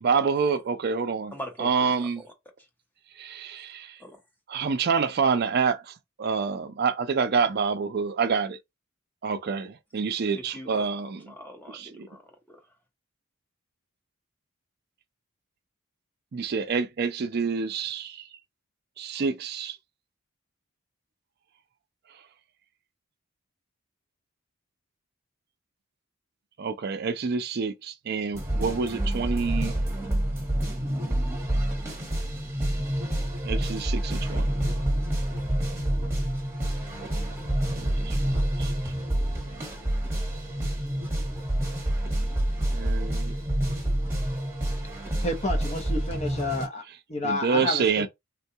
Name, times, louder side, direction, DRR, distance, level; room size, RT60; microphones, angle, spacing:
voice 1, 0.0-1.3 1.6-2.2 3.2-3.9 4.5-5.8 6.2-8.6 9.2-11.2 11.7-12.1 16.3-18.2 19.0-19.8 26.6-29.7 33.4-34.5 34.8-34.9 37.7-38.7 42.7-43.3 47.2-48.1, right 5 dB, 50° right, 0.4 m, -27 dB
voice 2, 1.3-2.3 4.0-4.2 10.3-10.9 11.3-12.6, equal, 10° left, 0.9 m, -42 dB
sound 1, 28.3-46.7, right 1 dB, 10° right, 1.1 m, -28 dB
voice 3, 45.2-46.8 47.1-48.1, left 2 dB, 30° left, 0.6 m, -30 dB
3.6 x 2.2 x 2.7 m
head